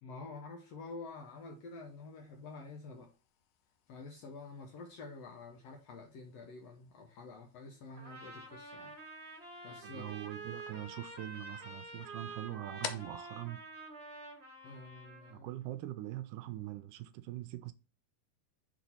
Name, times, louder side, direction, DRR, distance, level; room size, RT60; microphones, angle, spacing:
voice 1, 0.0-3.1 3.9-8.9 9.6-10.2 14.6-15.6, left 3 dB, 70° left, 1.6 m, -48 dB
sound 1, 1.1-14.8, left 9 dB, 85° left, 2.3 m, -53 dB
Trumpet, 8.0-15.3, right 3 dB, 35° right, 1.0 m, -48 dB
voice 2, 9.8-13.6 15.3-17.7, right 14 dB, 80° right, 2.0 m, -43 dB
6.1 x 4.1 x 4.3 m
omnidirectional pair, 3.8 m